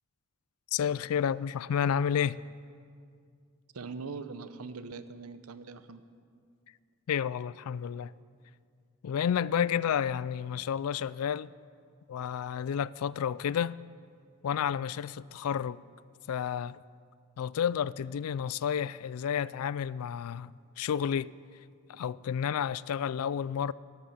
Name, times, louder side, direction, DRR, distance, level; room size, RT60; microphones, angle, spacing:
voice 1, 0.7-2.4 7.1-8.1 9.0-11.5 12.1-13.8 14.4-15.8 16.3-16.8 17.4-21.3 21.9-23.7, left 8 dB, 85° left, 0.3 m, -31 dB
voice 2, 3.7-6.0, right 4 dB, 90° right, 0.7 m, -42 dB
12.5 x 12.0 x 7.1 m
head